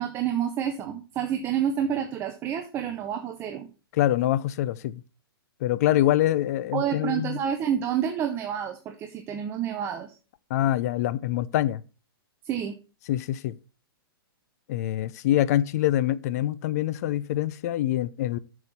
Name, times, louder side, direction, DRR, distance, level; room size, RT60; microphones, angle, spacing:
voice 1, 0.0-3.7 6.7-10.2 12.4-12.7, right 9 dB, 20° right, 0.6 m, -29 dB
voice 2, 4.0-5.0 5.6-7.4 10.5-11.8 13.1-13.6 14.7-18.4, left 13 dB, 40° left, 0.5 m, -25 dB
6.8 x 6.3 x 5.5 m
hypercardioid pair, 155°, 13 cm